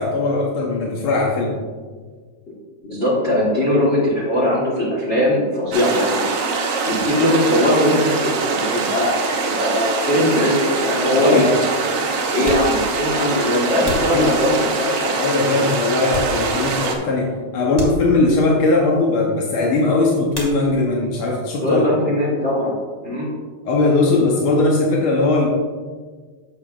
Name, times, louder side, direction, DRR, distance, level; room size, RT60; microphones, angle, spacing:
voice 1, 0.0-1.6 11.2-11.5 13.9-14.3 15.2-21.8 23.6-25.5, left 3 dB, 70° left, -2 dB, 1.2 m, -19 dB
voice 2, 2.8-6.2 6.8-11.5 12.3-15.1 15.5-15.6 21.6-23.3, left 1 dB, 55° left, -4 dB, 0.7 m, -20 dB
sound 1, 5.7-17.0, right 4 dB, 75° right, 2.3 m, -23 dB
sound 2, 12.4-14.9 15.4-16.8 17.1-17.3 17.7-18.5 20.3-21.1 21.3-22.0 22.3-24.5, left 1 dB, 15° left, 0.9 m, -34 dB
10.5 x 7.1 x 2.4 m, 1.5 s
omnidirectional pair, 3.4 m